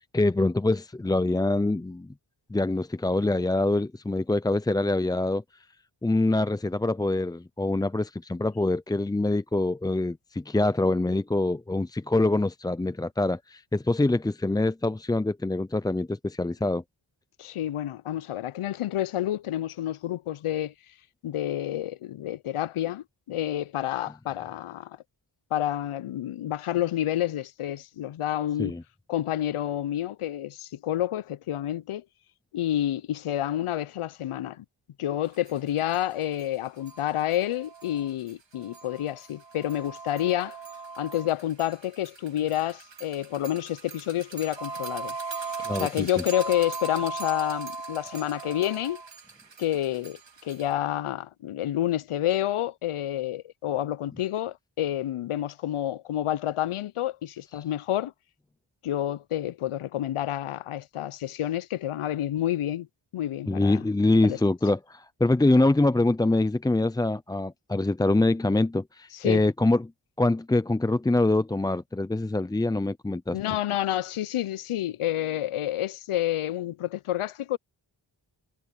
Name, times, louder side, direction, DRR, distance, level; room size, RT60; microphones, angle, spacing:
voice 1, 0.1-2.1 2.5-5.4 6.0-16.8 28.6-28.8 45.7-46.1 63.5-69.9 70.2-73.4, left 2 dB, 10° left, 0.3 m, -25 dB
voice 2, 17.4-20.7 21.2-25.0 25.5-28.8 29.1-32.0 32.5-34.6 35.0-40.6 41.0-45.1 45.7-49.0 49.6-58.1 58.8-62.9 63.1-63.8 64.2-64.4 69.1-69.4 73.3-77.6, left 12 dB, 85° left, 0.6 m, -29 dB
sound 1, 35.5-35.6 35.9-36.0 36.4-36.5 36.8-50.7, right 4 dB, 60° right, 2.6 m, -39 dB
wide cardioid pair, 75°, 49 cm